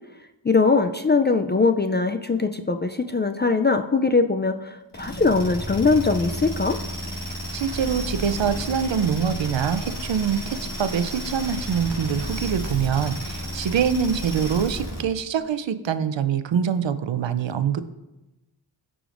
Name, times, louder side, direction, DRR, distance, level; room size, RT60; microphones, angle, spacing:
voice 1, 0.4-6.8, left 4 dB, 25° left, 7 dB, 0.3 m, -21 dB
sound 1, 4.9-15.1, equal, 50° left, 2.2 m, -32 dB
voice 2, 7.3-17.8, right 7 dB, 65° right, 12 dB, 0.6 m, -25 dB
14.0 x 5.0 x 2.5 m, 1.0 s
cardioid pair, 45°, 50 cm